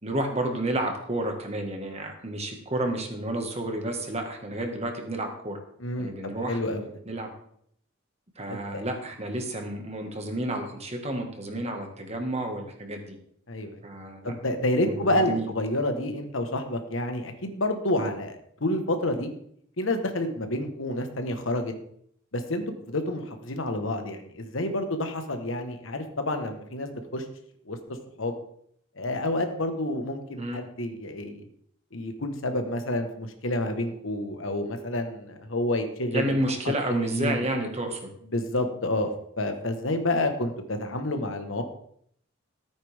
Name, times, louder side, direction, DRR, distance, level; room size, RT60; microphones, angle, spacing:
voice 1, 0.0-5.6 6.0-6.6 7.1-7.3 8.4-13.2 13.8-14.3 14.8-15.5 30.4-30.6 36.1-38.1, right 1 dB, 35° right, 3 dB, 1.8 m, -30 dB
voice 2, 5.8-6.1 6.5-6.8 8.5-8.8 13.5-13.8 14.2-19.3 19.8-21.7 22.3-27.2 27.6-27.8 28.2-28.3 29.0-31.5 31.9-36.3 36.9-37.4 38.3-39.1 39.4-41.6, left 1 dB, 90° left, 6 dB, 1.5 m, -29 dB
13.5 x 8.9 x 3.6 m, 0.68 s
head